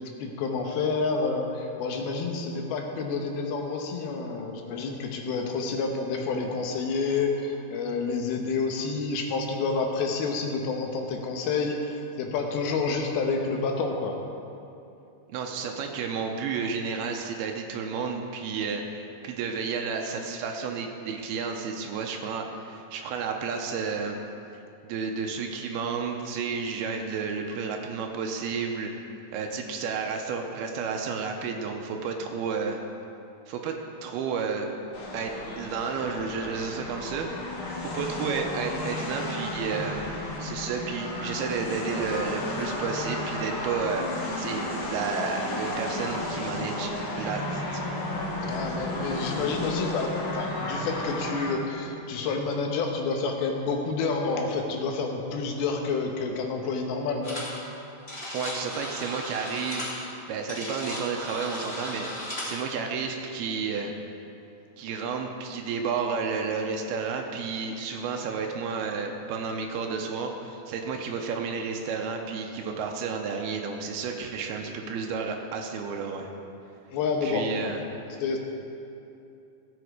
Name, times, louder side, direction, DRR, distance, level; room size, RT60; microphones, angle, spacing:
voice 1, 0.0-14.2 48.4-57.4 76.9-77.7 78.2-78.4, left 4 dB, 80° left, 2 dB, 2.9 m, -29 dB
voice 2, 15.3-24.2 24.8-28.9 29.3-32.8 33.5-33.8 34.0-34.7 35.1-37.6 37.8-40.1 40.4-44.1 44.4-47.9 58.3-59.9 60.3-63.9 64.8-76.3 77.2-77.8, right 5 dB, 85° right, 3 dB, 2.7 m, -31 dB
sound 1, 34.9-51.5, left 1 dB, 50° left, 1.1 m, -33 dB
sound 2, 57.2-57.6 57.9-62.6, equal, 20° left, 2.9 m, -36 dB
16.0 x 8.0 x 4.8 m, 2.7 s
omnidirectional pair, 4.5 m